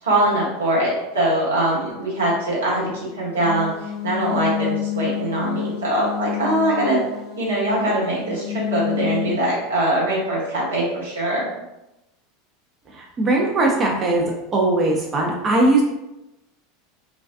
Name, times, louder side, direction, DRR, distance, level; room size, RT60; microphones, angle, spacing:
voice 1, 0.0-3.7 4.0-7.0 7.4-11.4, right 1 dB, 85° right, -6 dB, 1.0 m, -22 dB
sound 1, 3.3-9.3, left 11 dB, 55° left, 0.8 m, -29 dB
voice 2, 13.2-14.2 14.5-15.8, right 2 dB, 30° right, -1 dB, 0.5 m, -19 dB
2.3 x 2.3 x 2.4 m, 0.93 s
hypercardioid pair, 90°, 0 cm